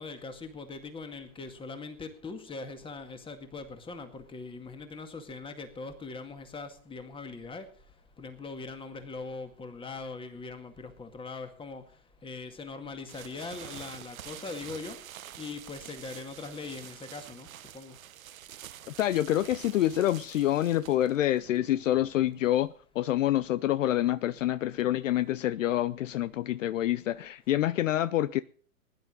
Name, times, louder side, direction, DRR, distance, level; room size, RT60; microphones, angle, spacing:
voice 1, 0.0-7.7 8.2-11.8 12.2-15.0 15.4-17.5 17.7-17.9, left 4 dB, 10° left, 2.0 m, -41 dB
sound 1, 13.1-22.7, right 11 dB, 65° right, 1.0 m, -47 dB
voice 2, 19.0-28.4, left 13 dB, 60° left, 0.6 m, -27 dB
21.0 x 11.0 x 4.0 m
hypercardioid pair, 115°, 44 cm